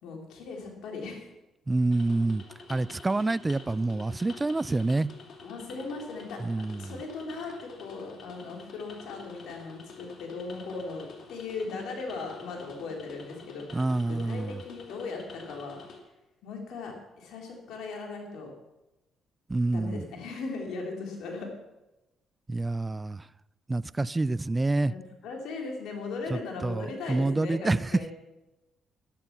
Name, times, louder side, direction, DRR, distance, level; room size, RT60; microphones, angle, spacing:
voice 1, 0.0-1.3 5.4-6.4 6.8-15.8 16.4-18.5 19.7-21.5 24.8-28.1, left 3 dB, 80° left, 1 dB, 3.6 m, -38 dB
voice 2, 1.7-2.4 2.7-5.1 6.4-6.9 13.7-14.6 19.5-20.0 22.5-23.3 23.7-24.9 26.3-28.0, right 2 dB, 20° right, 18 dB, 0.4 m, -27 dB
sound 1, 1.9-16.0, left 4 dB, 65° left, 2.8 m, -48 dB
12.5 x 12.0 x 6.0 m, 0.98 s
cardioid pair, 90°, 0 cm